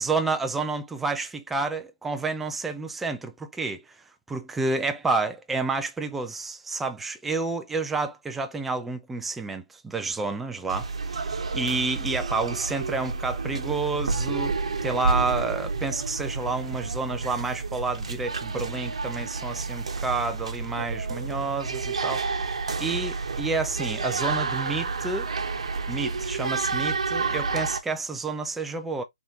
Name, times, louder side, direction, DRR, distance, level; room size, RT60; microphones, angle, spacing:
voice 1, 0.0-3.8 4.3-14.5 14.8-25.3 25.9-29.0, right 3 dB, 5° right, 0.4 m, -30 dB
sound 1, 10.7-27.8, right 4 dB, 75° right, 0.9 m, -30 dB
4.2 x 3.5 x 2.4 m
hypercardioid pair, 160°, 3 cm